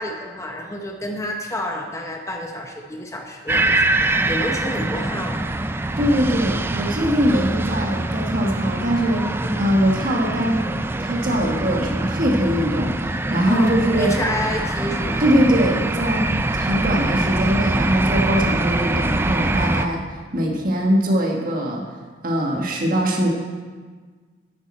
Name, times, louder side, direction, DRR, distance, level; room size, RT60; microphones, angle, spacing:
voice 1, 0.0-5.5 9.4-9.7 13.4-13.7 14.0-15.2 19.6-20.0, left 1 dB, 15° left, 2 dB, 0.9 m, -29 dB
sound 1, 3.5-19.9, right 2 dB, 15° right, 0.4 m, -24 dB
voice 2, 6.0-9.3 9.6-10.7 11.0-14.1 15.2-16.3 16.5-20.0 20.3-21.8 22.2-23.3, equal, 50° right, 0 dB, 1.4 m, -21 dB
10.5 x 10.0 x 4.3 m, 1.4 s
head